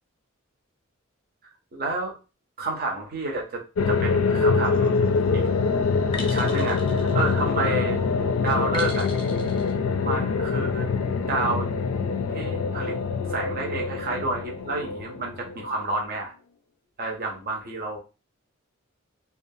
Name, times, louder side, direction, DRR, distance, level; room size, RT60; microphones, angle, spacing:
voice 1, 1.7-2.2 2.6-5.0 5.3-5.5 6.2-8.0 8.4-9.1 10.0-10.9 11.2-11.7 12.3-13.0 13.3-16.3 17.0-18.0, right 2 dB, 45° right, 1 dB, 0.6 m, -30 dB
sound 1, 3.8-15.8, left 4 dB, 75° left, 0.4 m, -24 dB
sound 2, 4.6-5.0 6.1-7.8 8.7-9.7, left 3 dB, 25° left, 0.6 m, -39 dB
2.4 x 2.3 x 2.6 m, 0.31 s
head